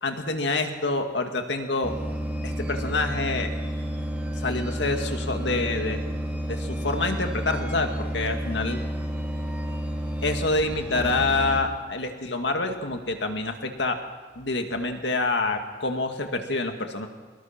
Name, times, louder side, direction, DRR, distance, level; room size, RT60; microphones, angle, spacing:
voice 1, 0.0-2.0 2.4-3.5 4.4-6.1 6.5-8.8 10.2-14.0 14.4-17.1, left 3 dB, 70° left, 5 dB, 2.2 m, -27 dB
sound 1, 1.8-11.6, equal, 5° right, 3.1 m, -31 dB
24.0 x 20.5 x 6.0 m, 1.5 s
head